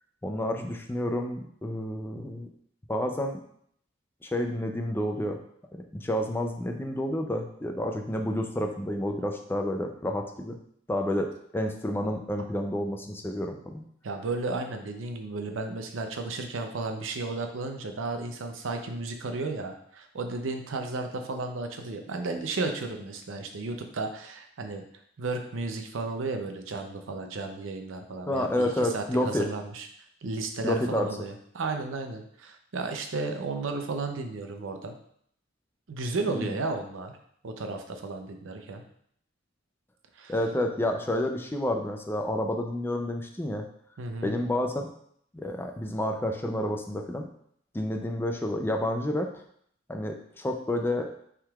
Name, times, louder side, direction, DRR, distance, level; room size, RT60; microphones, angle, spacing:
voice 1, 0.2-2.5 2.9-3.4 4.2-5.4 5.9-10.5 10.9-13.8 28.3-29.5 30.6-31.1 36.3-36.6 40.3-43.6 44.2-44.9 45.3-47.3 47.7-49.3 49.9-51.1, left 1 dB, 10° left, 4 dB, 0.4 m, -29 dB
voice 2, 14.0-24.8 25.2-29.9 30.2-34.9 35.9-37.1 37.4-38.8 40.2-40.3 44.0-44.4, right 3 dB, 85° right, 5 dB, 0.6 m, -33 dB
5.7 x 3.6 x 2.3 m, 0.66 s
head